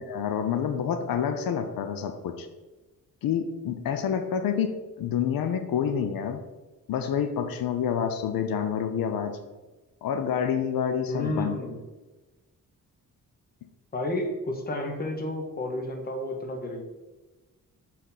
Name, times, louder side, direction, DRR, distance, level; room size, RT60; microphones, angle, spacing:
voice 1, 0.1-2.5 3.2-6.4 6.9-9.4 10.0-11.6, left 8 dB, 85° left, 8 dB, 0.6 m, -28 dB
voice 2, 11.1-11.8 13.9-16.8, left 1 dB, 25° left, 3 dB, 0.8 m, -31 dB
6.4 x 4.2 x 3.9 m, 1.2 s
wide cardioid pair, 160°, 34 cm